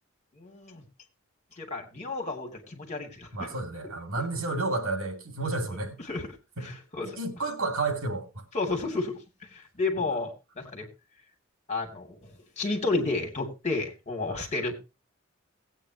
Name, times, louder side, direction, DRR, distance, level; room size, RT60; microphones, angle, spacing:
voice 1, 0.4-0.8 1.6-3.3 6.1-6.3 6.6-7.2 8.5-9.2 9.7-10.9 11.7-14.7, left 3 dB, 35° left, 3.0 m, -31 dB
voice 2, 3.3-6.0 6.6-6.8 7.2-8.3 14.3-14.4, right 3 dB, 80° right, 2.7 m, -31 dB
17.5 x 9.0 x 3.0 m
head